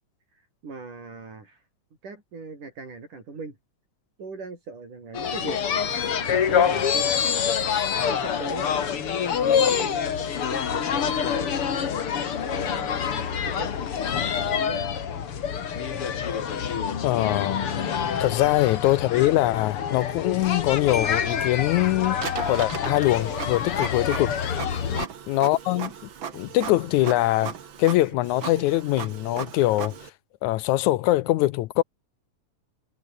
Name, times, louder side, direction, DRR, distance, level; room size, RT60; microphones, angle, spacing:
voice 1, 0.3-1.6 2.0-3.6 4.2-7.4 8.0-9.0 9.8-12.1 12.4-13.7 14.5-14.9 24.7-24.8, right 4 dB, 75° right, 8.1 m, -40 dB
sound 1, 5.1-25.1, left 7 dB, 45° left, 2.6 m, -26 dB
voice 2, 17.0-17.6 18.2-24.4 25.3-25.9 26.3-27.5 27.8-29.9 30.4-31.8, left 16 dB, 75° left, 1.9 m, -23 dB
Marimba xylophone, 20.9-22.7, left 3 dB, 20° left, 1.5 m, -36 dB
Printer, 22.2-30.1, right 8 dB, 45° right, 2.1 m, -37 dB
omnidirectional pair, 3.7 m